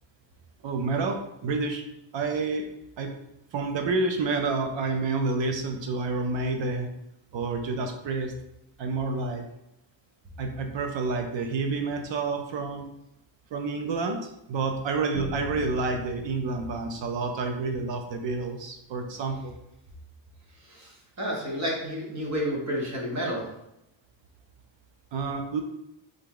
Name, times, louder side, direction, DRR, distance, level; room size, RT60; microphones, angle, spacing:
voice 1, 0.6-1.8 2.1-2.7 3.0-3.1 3.5-6.9 7.3-8.3 8.8-9.4 10.4-12.9 13.5-19.5 25.1-25.6, right 3 dB, 65° right, 4 dB, 0.7 m, -29 dB
sound 1, 15.1-19.4, left 3 dB, 30° left, 0.6 m, -43 dB
voice 2, 20.5-23.4, equal, 35° right, -3 dB, 1.4 m, -31 dB
3.9 x 3.6 x 3.7 m, 0.84 s
wide cardioid pair, 135°, 47 cm